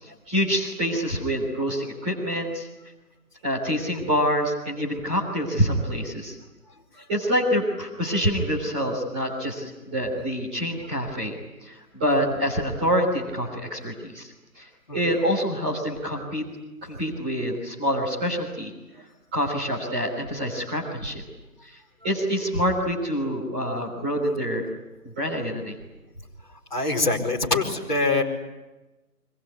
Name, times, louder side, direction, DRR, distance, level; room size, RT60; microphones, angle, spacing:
voice 1, 0.0-2.7 3.4-6.4 7.1-11.4 11.6-14.3 14.5-16.4 16.8-18.7 19.3-21.2 22.0-24.6 25.0-25.7, equal, 5° right, -8 dB, 3.5 m, -26 dB
voice 2, 26.7-28.2, left 3 dB, 30° left, -4 dB, 5.1 m, -24 dB
26.0 x 23.0 x 9.7 m, 1.0 s
figure-of-eight pair, 170°, 47 cm